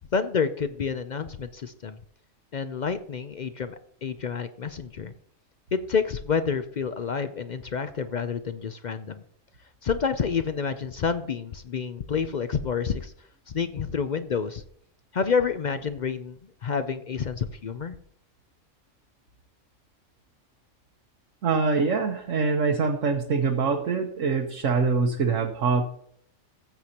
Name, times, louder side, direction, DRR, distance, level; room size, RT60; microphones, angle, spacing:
voice 1, 0.1-2.0 2.5-5.1 5.7-9.2 9.8-13.1 13.5-14.6 15.1-17.9, left 6 dB, 55° left, 10 dB, 0.5 m, -29 dB
voice 2, 21.4-25.8, right 4 dB, 75° right, 2 dB, 1.4 m, -24 dB
15.0 x 7.9 x 2.9 m, 0.64 s
omnidirectional pair, 1.3 m